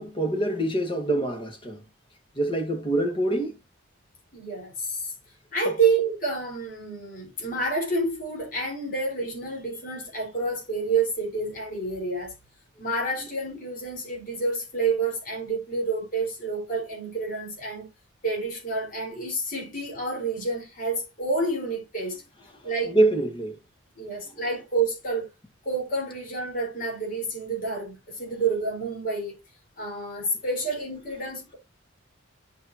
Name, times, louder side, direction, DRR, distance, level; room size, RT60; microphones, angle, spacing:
voice 1, 0.0-1.8 2.4-3.6 22.9-23.6, right 1 dB, 25° left, 1.7 m, -25 dB
voice 2, 4.3-5.1 5.5-12.3 12.8-17.9 18.2-22.2 22.6-23.0 24.0-25.3 25.6-29.4 29.8-31.5, right 3 dB, 45° left, 4.4 m, -29 dB
9.9 x 5.7 x 2.8 m
head